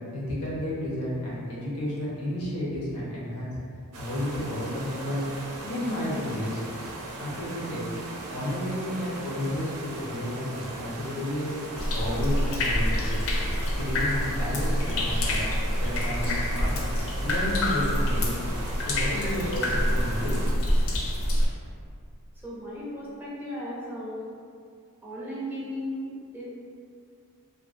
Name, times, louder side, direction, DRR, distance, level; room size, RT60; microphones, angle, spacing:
voice 1, 0.1-3.6 4.0-5.3 5.6-6.6 7.2-7.8 8.3-11.5 11.9-13.2 13.8-15.5 15.8-16.8 17.2-18.5 18.9-20.4, left 1 dB, 85° left, -7 dB, 0.8 m, -31 dB
sound 1, 3.9-20.5, right 2 dB, 70° right, 0.4 m, -39 dB
sound 2, 11.8-21.5, left 1 dB, 65° left, 0.4 m, -26 dB
voice 2, 22.4-24.2 25.0-26.4, equal, 10° right, -7 dB, 0.5 m, -36 dB
2.7 x 2.5 x 2.4 m, 2.2 s
head